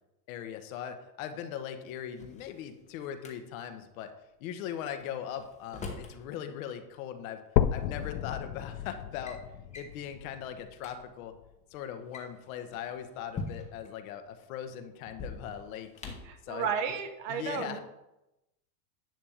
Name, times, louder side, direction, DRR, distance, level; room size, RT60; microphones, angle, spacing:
voice 1, 0.3-4.1 4.4-7.4 7.7-9.4 9.8-11.3 11.7-15.9 16.4-16.7 17.3-17.8, left 9 dB, 55° left, 8 dB, 1.1 m, -39 dB
Drawer open or close, 2.0-3.3 5.0-6.2 7.5-7.6 8.4-8.6 9.0-9.4 9.7-10.0 10.5-10.6 10.8-10.9 11.9-13.9 15.1-16.4, left 3 dB, 15° left, 1.0 m, -43 dB
sound 1, 7.6-11.6 12.1-12.2 12.8-12.9 13.2-13.3 14.1-14.2, left 11 dB, 85° left, 0.6 m, -33 dB
voice 2, 16.2-17.8, right 7 dB, 50° right, 8 dB, 1.2 m, -33 dB
10.5 x 3.5 x 7.1 m, 0.93 s
supercardioid pair, 155°, 50 cm